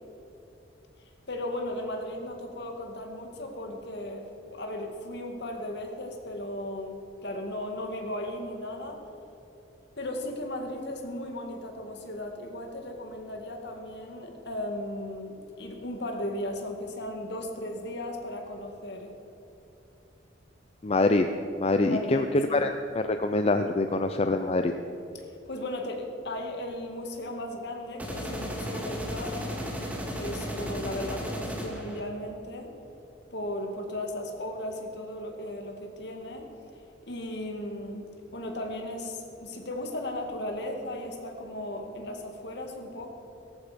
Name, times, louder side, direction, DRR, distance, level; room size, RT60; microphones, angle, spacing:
voice 1, 1.3-9.0 9.9-19.1 21.9-22.7 25.1-29.6 30.2-32.7 33.3-36.5 37.1-38.1 38.3-43.1, left 1 dB, 60° left, 3 dB, 2.2 m, -36 dB
voice 2, 20.8-21.3 21.6-24.7, left 2 dB, 30° left, 7 dB, 0.5 m, -25 dB
sound 1, 28.0-32.0, equal, 10° right, 2.0 m, -34 dB
17.5 x 14.5 x 5.2 m, 2.9 s
head